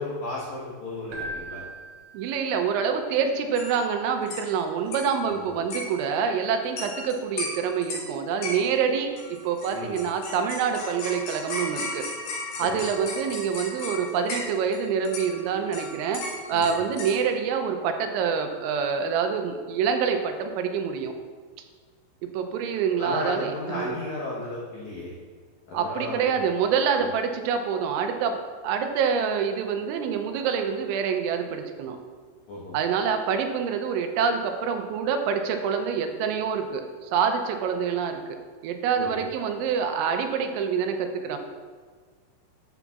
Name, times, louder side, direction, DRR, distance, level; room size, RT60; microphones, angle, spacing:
voice 1, 0.0-1.6 5.3-5.5 9.7-9.9 12.6-12.8 16.5-16.7 23.0-25.1 25.7-26.3 27.0-27.1 32.5-32.8 38.9-39.2, left 2 dB, 85° left, -6 dB, 1.7 m, -34 dB
Keyboard (musical), 1.1-2.9, right 1 dB, 65° right, 2.1 m, -39 dB
voice 2, 2.1-9.1 9.4-12.1 12.6-16.2 16.5-21.1 22.3-24.0 25.7-32.0 32.7-38.2 38.6-41.4, right 6 dB, 90° right, 5 dB, 3.0 m, -26 dB
sound 1, 3.6-3.9 4.3-4.5 4.9-5.3 5.7-6.1 6.8-7.1 7.4-8.1 8.4-8.9 9.2-14.8 15.0-17.2, left 2 dB, 60° left, 3.4 m, -36 dB
10.5 x 8.1 x 2.4 m, 1.5 s
omnidirectional pair, 5.4 m